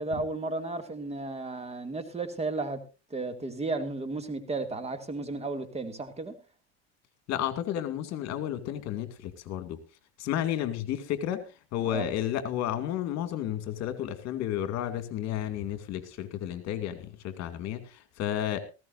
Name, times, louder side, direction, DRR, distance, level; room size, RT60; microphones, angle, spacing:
voice 1, 0.0-2.8 3.1-6.3 11.9-12.1, right 3 dB, 20° right, 9 dB, 2.3 m, -33 dB
voice 2, 7.3-9.8 10.2-18.6, left 11 dB, 55° left, 9 dB, 2.5 m, -32 dB
19.0 x 15.5 x 2.6 m, 0.31 s
supercardioid pair, 120°, 32 cm